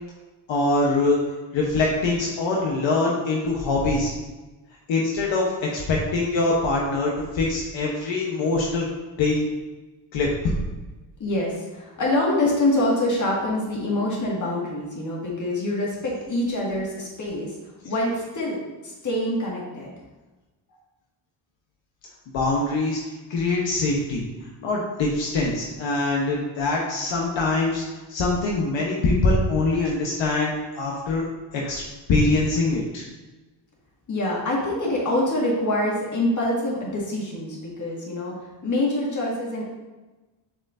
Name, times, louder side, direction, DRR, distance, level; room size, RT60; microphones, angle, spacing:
voice 1, 0.5-1.2 1.5-4.1 4.9-8.8 9.2-9.4 10.1-10.3 22.3-23.0 23.3-24.2 24.6-27.8 28.1-31.2 31.5-31.8 32.1-33.0, left 2 dB, 75° left, -2 dB, 1.1 m, -23 dB
voice 2, 11.2-17.6 17.8-19.9 34.1-38.3 38.6-39.6, left 1 dB, 40° left, -4 dB, 1.9 m, -25 dB
7.4 x 4.9 x 2.6 m, 1.2 s
cardioid pair, 130°, 46 cm